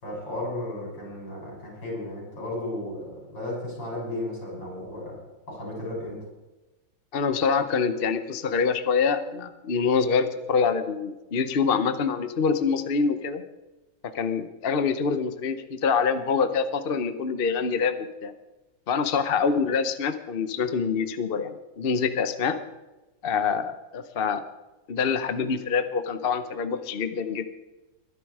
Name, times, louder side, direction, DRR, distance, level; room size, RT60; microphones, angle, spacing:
voice 1, 0.0-5.2 5.5-6.2, left 1 dB, 70° left, -2 dB, 7.4 m, -34 dB
voice 2, 7.1-13.4 14.1-18.3 18.9-22.6 23.2-24.4 24.9-27.5, left 5 dB, 45° left, 10 dB, 0.8 m, -25 dB
22.0 x 10.5 x 4.8 m, 1.0 s
omnidirectional pair, 2.0 m